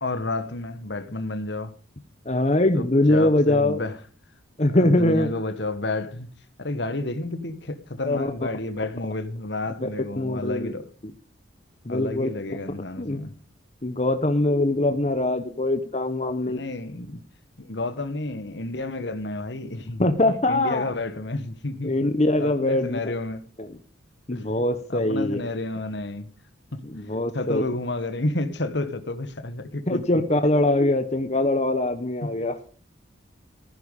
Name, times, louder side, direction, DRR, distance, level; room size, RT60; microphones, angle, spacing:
voice 1, 0.0-1.8 2.7-4.0 4.7-6.3 6.6-10.9 11.9-13.4 16.5-17.2 17.6-22.1 22.4-23.4 24.3-24.5 24.9-26.3 26.7-30.2 32.2-32.3, left 2 dB, 60° left, 1.4 m, -31 dB
voice 2, 2.3-3.8 4.6-5.3 8.1-8.3 9.8-9.9 10.2-10.7 11.9-12.3 13.0-13.2 13.8-16.6 20.0-20.9 21.8-23.0 23.6-23.7 24.3-25.4 26.8-27.6 29.9-32.6, left 1 dB, 35° left, 1.0 m, -22 dB
15.5 x 9.9 x 5.3 m
head